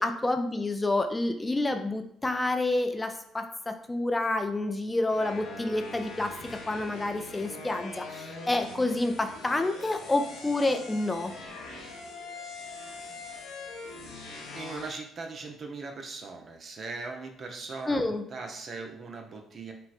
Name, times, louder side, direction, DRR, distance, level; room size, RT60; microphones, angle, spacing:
voice 1, 0.0-6.3 6.7-11.3 17.9-18.2, left 2 dB, 20° left, 7 dB, 0.4 m, -28 dB
sound 1, 5.1-15.0, left 3 dB, 70° left, 0.7 m, -42 dB
voice 2, 14.5-19.7, right 4 dB, 50° right, 4 dB, 0.6 m, -40 dB
5.5 x 2.1 x 2.5 m, 0.69 s
hypercardioid pair, 50°, 0 cm